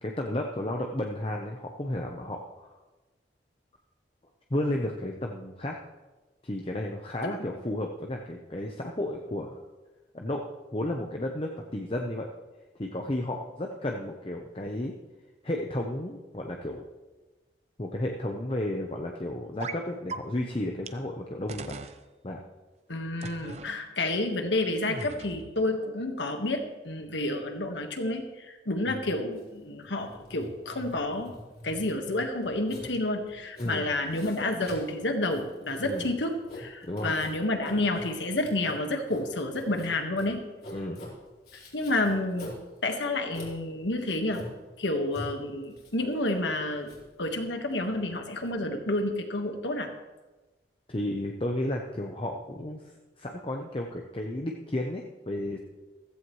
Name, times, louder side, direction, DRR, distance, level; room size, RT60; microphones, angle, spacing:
voice 1, 0.0-2.7 4.5-5.8 6.4-9.6 10.1-12.3 12.7-14.9 15.4-16.9 17.8-21.7 22.2-22.4 28.9-29.0 33.6-33.9 35.8-36.1 36.8-37.2 40.7-41.0 50.9-52.8 53.2-55.6, left 1 dB, 30° left, 1 dB, 0.8 m, -33 dB
sound 1, 19.6-19.8 20.1-20.2 20.9-21.0 21.5-22.0 23.2-23.7 24.8-25.5, right 3 dB, 35° right, 0.6 m, -38 dB
voice 2, 22.9-31.3 31.6-40.4 41.7-42.5 42.8-44.4 44.8-46.9 47.2-49.9, left 2 dB, 85° left, 5 dB, 1.5 m, -30 dB
Writing, 29.3-48.5, left 1 dB, 55° left, 3.9 m, -45 dB
15.5 x 14.5 x 3.2 m, 1.2 s
head